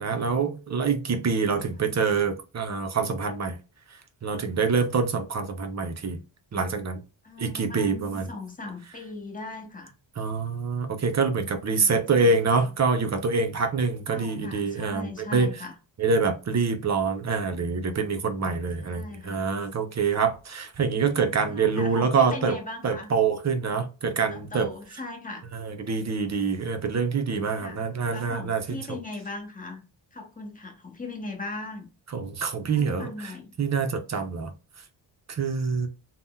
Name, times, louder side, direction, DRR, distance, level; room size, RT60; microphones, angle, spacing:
voice 1, 0.0-3.6 3.9-6.2 6.5-7.0 7.4-8.3 10.2-15.6 16.0-22.6 22.8-24.7 25.5-29.0 32.1-34.5 35.3-35.9, right 5 dB, 35° right, 0.5 m, -26 dB
voice 2, 7.2-9.9 11.8-12.0 14.1-15.7 18.8-19.5 21.5-23.1 24.3-25.4 27.6-29.8 30.1-31.9 32.7-33.5, left 2 dB, 15° left, 0.8 m, -39 dB
2.6 x 2.1 x 3.5 m
wide cardioid pair, 105°, 47 cm